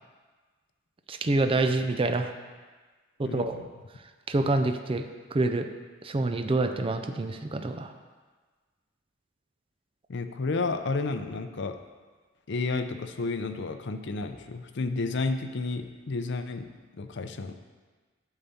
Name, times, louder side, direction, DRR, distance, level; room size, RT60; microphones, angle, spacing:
voice 1, 1.1-2.3 3.2-3.6 4.3-5.7 6.0-7.9, right 2 dB, 30° right, 7 dB, 0.5 m, -27 dB
voice 2, 3.2-3.7 10.1-11.8 12.5-16.7 16.9-17.5, left 3 dB, 65° left, 8 dB, 0.6 m, -31 dB
8.9 x 4.1 x 7.0 m, 1.4 s
head